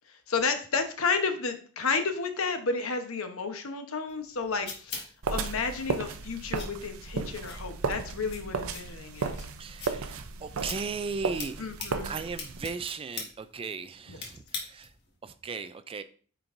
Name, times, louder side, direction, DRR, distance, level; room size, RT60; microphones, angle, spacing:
voice 1, 0.3-5.0 5.3-9.5 11.6-12.1 14.1-14.2, left 4 dB, 75° left, 7 dB, 0.9 m, -31 dB
sound 1, 4.1-15.1, left 5 dB, 50° left, 1.6 m, -44 dB
sound 2, 5.2-12.7, right 4 dB, 80° right, 0.6 m, -35 dB
voice 2, 9.6-11.7 12.0-14.9 15.2-16.0, right 5 dB, 25° right, 12 dB, 0.3 m, -37 dB
9.0 x 4.5 x 2.6 m, 0.43 s
head